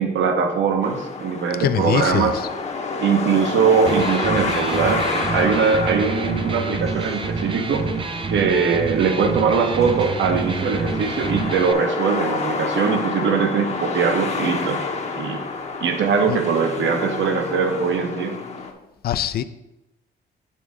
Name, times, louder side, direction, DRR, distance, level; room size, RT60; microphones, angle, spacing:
voice 1, 0.0-2.3 3.0-7.9 8.3-14.8 15.1-15.4 15.8-18.4, right 5 dB, 70° right, 5 dB, 1.0 m, -21 dB
sound 1, 0.8-18.7, left 4 dB, 35° left, 0.9 m, -29 dB
voice 2, 1.6-2.5 16.3-16.4 19.0-19.4, left 10 dB, 50° left, 13 dB, 0.4 m, -23 dB
Electric guitar, 3.7-11.7, right 4 dB, 25° right, 0.4 m, -28 dB
6.9 x 3.5 x 6.2 m, 0.94 s
cardioid pair, 90°, 20 cm